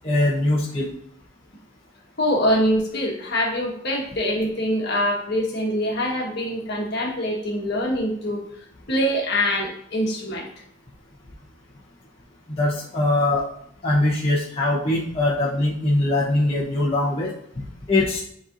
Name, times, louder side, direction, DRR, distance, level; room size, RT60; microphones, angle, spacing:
voice 1, 0.0-0.9 12.5-13.5 13.8-18.2, left 2 dB, 30° left, -6 dB, 1.0 m, -22 dB
voice 2, 2.2-8.4 8.9-10.5, equal, 55° left, -1 dB, 1.4 m, -24 dB
10.5 x 4.2 x 2.6 m, 0.69 s
head